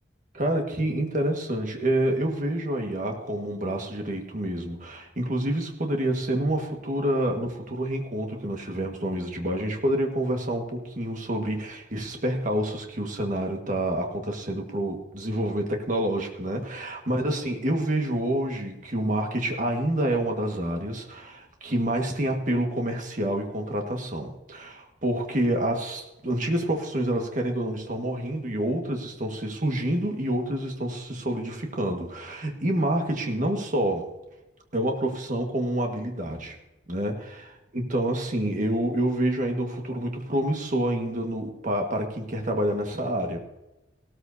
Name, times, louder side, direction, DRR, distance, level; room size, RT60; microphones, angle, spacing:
voice 1, 0.3-34.1 34.7-36.6 36.9-43.4, right 1 dB, 45° right, 3 dB, 1.6 m, -28 dB
17.0 x 13.5 x 2.7 m, 1.0 s
head